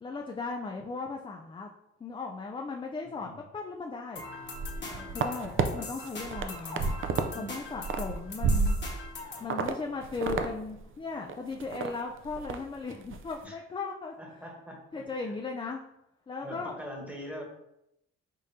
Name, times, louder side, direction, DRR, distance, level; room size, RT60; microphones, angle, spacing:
voice 1, 0.0-1.7 2.0-4.2 5.1-6.8 7.3-8.8 9.4-14.1 14.9-15.8 16.3-16.7, left 4 dB, 15° left, 1 dB, 0.4 m, -37 dB
sound 1, 4.2-9.5, left 2 dB, 35° left, 1.1 m, -42 dB
sound 2, 4.5-5.7 6.1-7.3 7.6-9.1 9.5-9.7 10.0-10.5 10.8-10.9 11.3-11.9 12.2-12.6 12.9-13.2, right 4 dB, 45° right, 0.5 m, -30 dB
voice 2, 4.9-5.6 7.3-7.5 13.4-13.6 14.2-15.0 16.4-17.4, equal, 5° right, 1 dB, 1.2 m, -43 dB
5.2 x 3.6 x 2.8 m, 0.84 s
cardioid pair, 90°, 30 cm